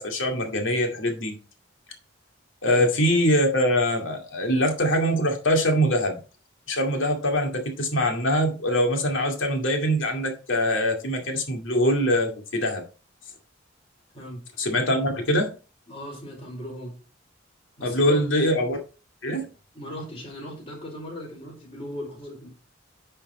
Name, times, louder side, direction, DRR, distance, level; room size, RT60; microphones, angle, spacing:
voice 1, 0.0-1.3 2.6-6.2 6.7-12.8 14.6-15.5 17.8-18.8 19.2-19.5, equal, 75° left, 3 dB, 2.2 m, -23 dB
voice 2, 15.9-17.0 17.8-18.5 19.7-22.5, left 1 dB, 30° left, -2 dB, 4.1 m, -38 dB
10.0 x 4.5 x 4.3 m, 0.34 s
head